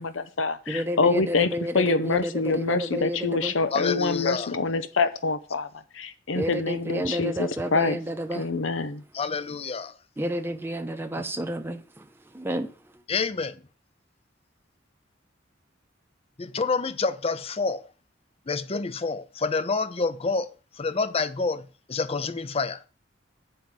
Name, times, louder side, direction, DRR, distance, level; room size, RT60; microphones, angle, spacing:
voice 1, 0.0-5.7 5.9-8.0 8.3-9.0, left 4 dB, 85° left, 0.7 m, -26 dB
voice 2, 0.7-3.5 6.3-8.5 10.2-12.1 12.3-12.7, equal, 10° right, 0.7 m, -30 dB
voice 3, 3.7-4.5 9.1-9.9 11.2-11.3 13.1-13.6 16.4-17.8 18.5-20.5 20.8-21.6 21.9-22.8, left 4 dB, 30° left, 0.6 m, -28 dB
7.8 x 5.2 x 7.3 m
head